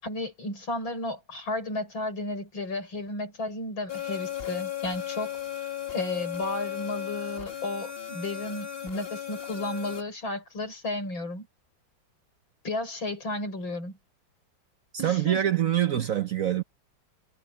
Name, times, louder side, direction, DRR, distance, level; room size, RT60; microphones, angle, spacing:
voice 1, 0.0-5.3 5.9-11.5 12.6-14.0 15.0-15.4 16.0-16.1, left 2 dB, 85° left, 7.3 m, -33 dB
sound 1, 3.9-10.0, left 10 dB, 30° left, 2.1 m, -35 dB
voice 2, 15.0-16.6, right 11 dB, 55° right, 1.0 m, -25 dB
omnidirectional pair, 2.1 m